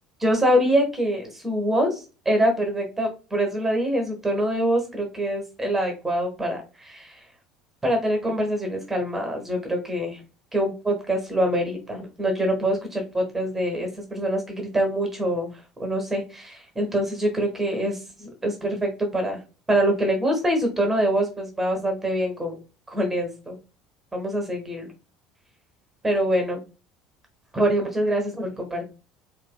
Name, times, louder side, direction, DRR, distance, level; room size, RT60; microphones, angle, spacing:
voice 1, 0.2-7.2 7.8-10.2 10.5-19.4 19.7-22.5 22.9-23.6 24.1-24.9 26.0-26.6 27.5-28.8, right 1 dB, 15° right, 3 dB, 1.2 m, -25 dB
4.6 x 2.7 x 2.3 m, 0.32 s
figure-of-eight pair, 65°, 2 cm